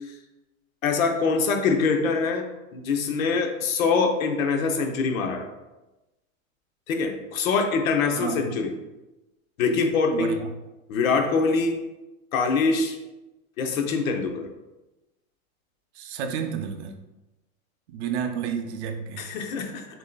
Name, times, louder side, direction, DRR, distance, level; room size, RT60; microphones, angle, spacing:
voice 1, 0.8-5.5 6.9-8.7 9.6-10.4 10.9-11.8 12.3-13.0 13.6-14.5 19.2-19.9, left 4 dB, 75° left, 4 dB, 0.9 m, -24 dB
voice 2, 8.2-8.5 10.1-10.5 16.0-17.0 17.9-19.3, right 7 dB, 50° right, 6 dB, 0.6 m, -31 dB
7.2 x 2.7 x 2.3 m, 1.0 s
hypercardioid pair, 140°, 42 cm